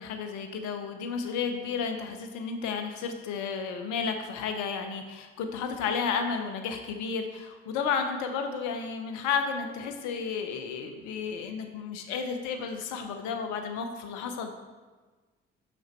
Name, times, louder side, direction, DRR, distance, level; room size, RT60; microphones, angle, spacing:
voice 1, 0.0-14.6, left 6 dB, 70° left, 5 dB, 0.8 m, -32 dB
6.6 x 6.0 x 4.5 m, 1.3 s
hypercardioid pair, 40°, 31 cm